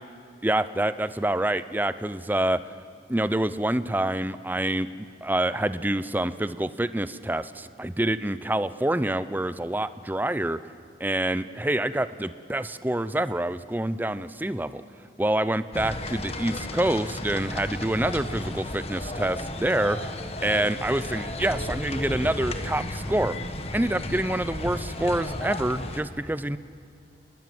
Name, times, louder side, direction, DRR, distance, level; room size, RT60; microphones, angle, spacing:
voice 1, 0.4-2.6 3.1-10.6 11.0-14.8 15.2-20.1 20.4-23.4 23.7-26.6, right 1 dB, 10° right, 14 dB, 0.6 m, -27 dB
sound 1, 15.7-26.0, left 1 dB, 35° left, 1.5 m, -33 dB
30.0 x 20.0 x 7.8 m, 2.3 s
head